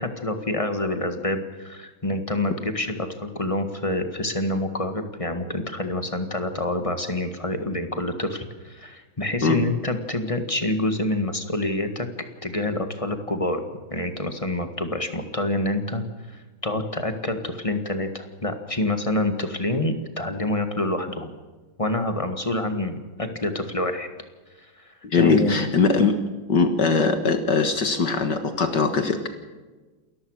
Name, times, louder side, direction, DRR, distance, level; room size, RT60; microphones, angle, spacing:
voice 1, 0.0-12.1 12.4-13.6 13.9-21.3 21.8-24.1 24.6-25.6, left 1 dB, 15° left, 7 dB, 1.6 m, -27 dB
voice 2, 25.0-26.2 26.5-29.3, left 4 dB, 55° left, 7 dB, 2.0 m, -21 dB
28.5 x 14.5 x 6.5 m, 1.3 s
omnidirectional pair, 2.3 m